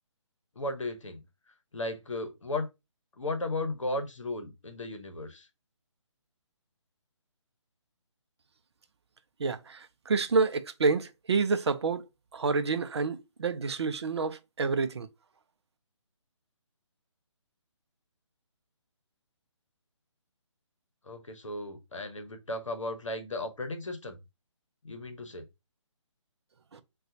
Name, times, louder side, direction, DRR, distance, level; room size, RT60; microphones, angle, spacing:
voice 1, 0.6-1.2 1.7-2.7 3.2-5.5 21.1-24.2 24.8-25.4, left 2 dB, 75° left, 0.9 m, -35 dB
voice 2, 9.4-12.1 12.3-15.1 26.7-26.8, right 4 dB, 55° right, 0.5 m, -28 dB
3.7 x 2.3 x 2.7 m
figure-of-eight pair, 145°, 16 cm